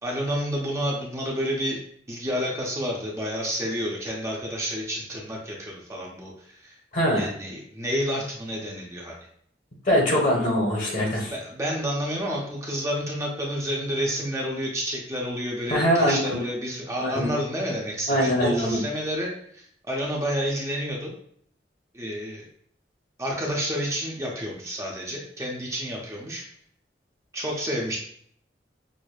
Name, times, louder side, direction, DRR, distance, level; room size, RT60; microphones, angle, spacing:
voice 1, 0.0-1.8 2.1-6.8 7.2-9.2 11.3-21.1 21.9-22.4 23.2-26.4 27.3-28.0, equal, 15° right, -2 dB, 0.6 m, -30 dB
voice 2, 6.9-7.3 9.9-11.3 15.7-16.5 17.0-17.3 18.1-18.8, equal, 45° left, -1 dB, 1.1 m, -22 dB
6.2 x 2.1 x 2.3 m, 0.64 s
head